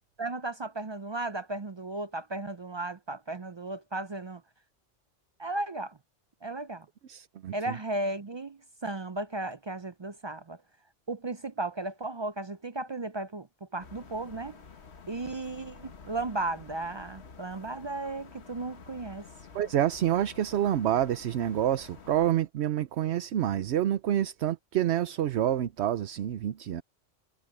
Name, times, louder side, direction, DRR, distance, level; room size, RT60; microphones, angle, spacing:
voice 1, 0.2-4.4 5.4-6.0 6.4-6.9 7.5-10.6 11.1-14.6 15.1-19.3, right 2 dB, 40° right, 0.4 m, -35 dB
voice 2, 7.1-7.7 19.5-26.8, right 11 dB, 75° right, 0.9 m, -28 dB
sound 1, 13.8-22.3, left 5 dB, 70° left, 1.6 m, -50 dB
omnidirectional pair, 1.2 m